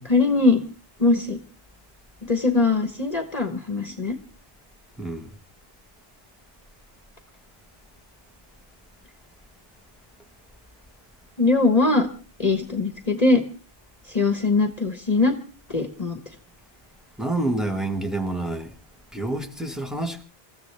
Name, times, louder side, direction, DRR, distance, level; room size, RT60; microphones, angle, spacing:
voice 1, 0.0-0.6 1.0-1.4 2.2-4.2 11.4-12.1 12.4-13.4 14.1-15.3 15.7-16.2, left 3 dB, 40° left, 1.3 m, -21 dB
voice 2, 5.0-5.3 17.2-18.7 19.1-20.2, right 2 dB, ahead, 1.6 m, -28 dB
27.0 x 14.5 x 3.4 m
omnidirectional pair, 1.0 m